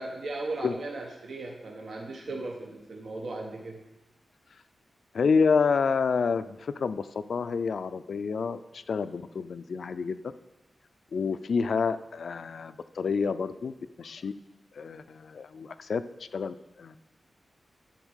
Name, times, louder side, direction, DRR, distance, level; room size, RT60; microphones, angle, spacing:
voice 1, 0.0-3.8, right 2 dB, 65° right, 1 dB, 1.1 m, -37 dB
voice 2, 5.1-10.2 11.1-14.3 14.7-17.0, left 5 dB, 65° left, 13 dB, 0.4 m, -29 dB
11.5 x 4.2 x 6.4 m, 0.99 s
wide cardioid pair, 150°, 0 cm